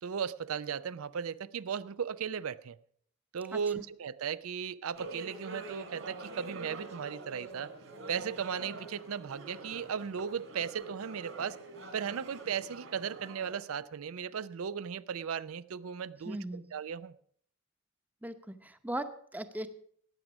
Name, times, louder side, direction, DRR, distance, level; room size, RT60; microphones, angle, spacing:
voice 1, 0.0-2.8 3.3-7.7 8.1-11.6 11.9-17.1, right 7 dB, 90° right, 0.5 m, -36 dB
sound 1, 4.9-13.5, right 2 dB, 70° right, 3.4 m, -46 dB
voice 2, 16.2-16.6 18.2-19.7, right 1 dB, 10° right, 0.7 m, -38 dB
15.0 x 9.4 x 6.0 m
head